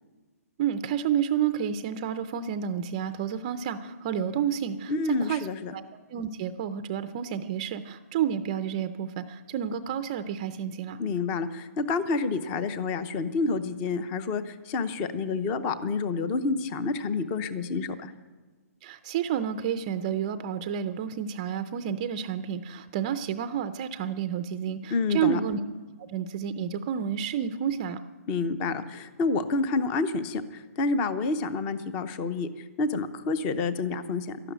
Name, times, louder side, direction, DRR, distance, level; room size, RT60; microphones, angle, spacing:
voice 1, 0.6-4.9 5.2-5.8 6.1-11.0 18.8-25.6 26.0-28.0, right 9 dB, 25° right, 11 dB, 0.5 m, -30 dB
voice 2, 4.9-5.7 11.0-18.1 24.9-25.4 28.3-34.4, left 3 dB, 15° left, 13 dB, 0.7 m, -28 dB
12.5 x 12.0 x 9.3 m, 1.4 s
hypercardioid pair, 165°, 9 cm